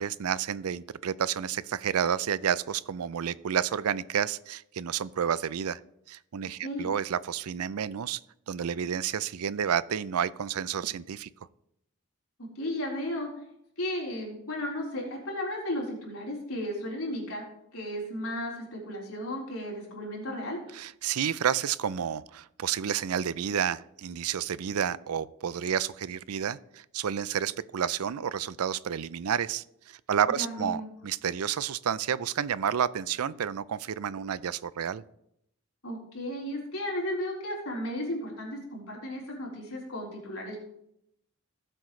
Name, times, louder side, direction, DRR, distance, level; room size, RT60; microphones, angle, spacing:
voice 1, 0.0-5.8 6.1-8.2 8.5-11.3 20.7-35.0, right 8 dB, 85° right, 18 dB, 0.4 m, -30 dB
voice 2, 12.6-13.3 13.8-17.4 17.7-20.6 30.4-30.9 35.8-40.6, left 1 dB, 80° left, -3 dB, 4.1 m, -34 dB
18.5 x 7.8 x 3.2 m, 0.77 s
head